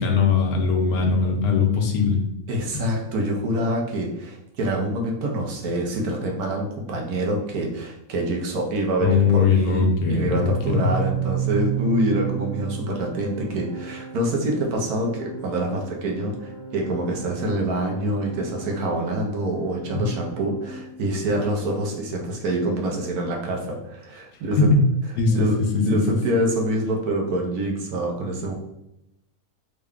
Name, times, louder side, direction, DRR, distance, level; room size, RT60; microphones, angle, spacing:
voice 1, 0.0-2.2 2.7-2.8 9.0-10.9 19.9-20.0 24.6-24.8 25.2-26.0, left 4 dB, 80° left, 3 dB, 1.1 m, -20 dB
voice 2, 2.5-24.7 25.3-28.5, right 1 dB, 80° right, 0 dB, 1.3 m, -26 dB
Organ, 10.4-21.2, right 9 dB, 55° right, 1.8 m, -33 dB
3.6 x 2.2 x 3.5 m, 0.83 s
omnidirectional pair, 1.6 m